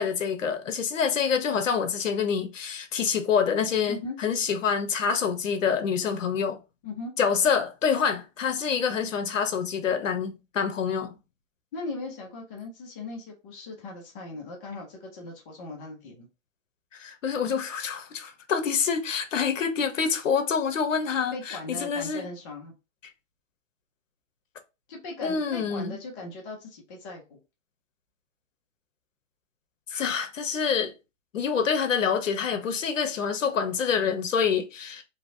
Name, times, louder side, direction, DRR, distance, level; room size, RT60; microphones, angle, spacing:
voice 1, 0.0-6.6 7.2-11.1 16.9-22.3 25.2-26.0 29.9-30.9 31.3-35.0, left 6 dB, 70° left, 0.9 m, -26 dB
voice 2, 11.7-16.3 21.3-22.7 24.9-27.4, left 2 dB, 15° left, 0.4 m, -39 dB
3.1 x 2.7 x 2.6 m
hypercardioid pair, 140°, 39 cm